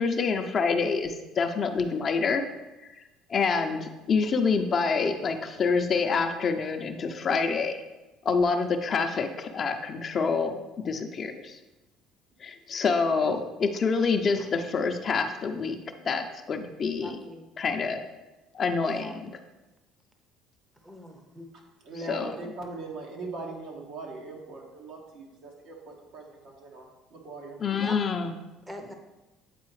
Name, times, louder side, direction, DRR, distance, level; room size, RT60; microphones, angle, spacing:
voice 1, 0.0-2.5 3.0-3.1 3.3-7.8 8.2-11.6 12.4-15.8 16.0-17.2 17.6-18.0 18.5-19.3 22.1-22.3 27.6-28.3, left 5 dB, 40° left, 6 dB, 0.6 m, -27 dB
voice 2, 17.0-17.5 18.8-19.2 20.8-21.5 27.8-28.0 28.7-28.9, equal, 5° right, 4 dB, 0.7 m, -42 dB
voice 3, 21.8-27.6, right 3 dB, 65° right, 0 dB, 1.4 m, -40 dB
8.4 x 4.0 x 3.2 m, 1.1 s
cardioid pair, 105°, 0 cm